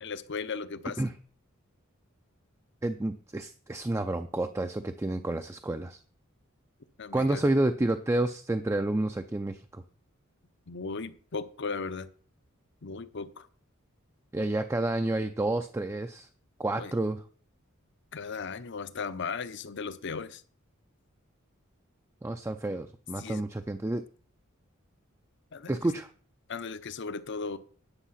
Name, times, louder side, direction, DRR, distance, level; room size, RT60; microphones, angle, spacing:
voice 1, 0.0-1.0 7.0-7.4 10.7-12.1 12.8-13.5 16.8-16.9 18.1-20.4 23.2-23.4 25.5-25.8 26.5-27.6, left 4 dB, 60° left, 14 dB, 0.7 m, -36 dB
voice 2, 2.8-6.0 7.1-9.8 14.3-16.3 16.6-17.2 22.2-24.0 25.7-26.1, right 2 dB, 15° right, 8 dB, 0.4 m, -29 dB
9.9 x 6.6 x 5.7 m, 0.43 s
head